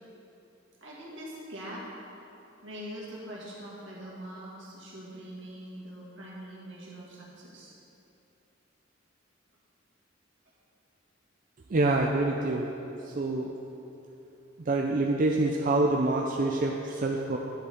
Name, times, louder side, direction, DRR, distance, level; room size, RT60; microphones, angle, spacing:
voice 1, 0.8-1.9 2.6-7.7, equal, 75° right, -5 dB, 1.9 m, -43 dB
voice 2, 11.7-12.7 13.1-13.5 14.7-17.4, right 2 dB, 45° right, 0 dB, 0.4 m, -26 dB
10.5 x 6.7 x 3.7 m, 2.9 s
head